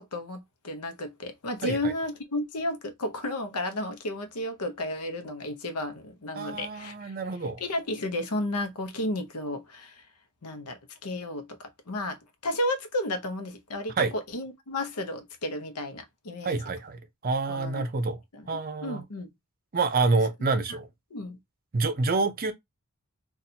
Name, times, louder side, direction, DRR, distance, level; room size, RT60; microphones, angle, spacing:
voice 1, 0.0-7.1 7.6-10.0 10.4-16.6 17.5-17.8 18.3-18.5 18.8-19.3 21.1-21.4, left 1 dB, 85° left, 0.8 m, -33 dB
voice 2, 6.4-7.6 14.0-14.1 16.4-18.2 18.5-19.0 19.7-20.9 21.7-22.5, right 3 dB, 40° right, 0.6 m, -27 dB
4.2 x 2.4 x 2.7 m
head